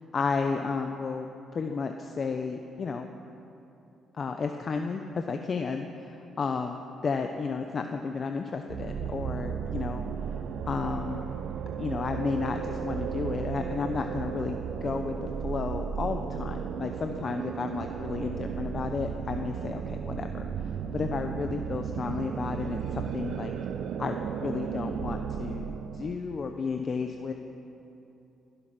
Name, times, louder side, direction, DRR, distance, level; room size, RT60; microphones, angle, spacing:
voice 1, 0.1-1.3 1.5-3.1 4.1-10.1 10.7-11.2 11.8-15.1 15.4-23.5 24.0-27.3, left 5 dB, 45° left, 5 dB, 0.8 m, -32 dB
sound 1, 8.7-26.1, right 7 dB, 70° right, 0.7 m, -34 dB
20.5 x 11.0 x 6.1 m, 2.8 s
cardioid pair, 90°, 0 cm